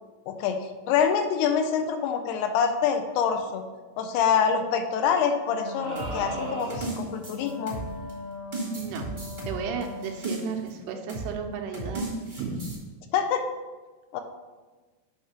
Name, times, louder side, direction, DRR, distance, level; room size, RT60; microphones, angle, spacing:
voice 1, 0.3-0.6 0.9-3.6 4.0-7.8 13.1-13.4 14.1-14.2, left 7 dB, 80° left, 6 dB, 2.5 m, -25 dB
Wind instrument woodwind instrument, 5.5-10.6, left 1 dB, 45° left, 1.4 m, -40 dB
sound 1, 5.8-7.1, right 2 dB, 65° right, 1.5 m, -36 dB
sound 2, 5.9-8.1 8.5-10.7 11.1-11.3 11.7-12.8, right 2 dB, 35° right, 0.7 m, -35 dB
voice 2, 8.7-9.1 9.4-12.8, right 6 dB, 80° right, 4 dB, 2.5 m, -34 dB
8.7 x 3.5 x 5.7 m, 1.3 s
omnidirectional pair, 4.8 m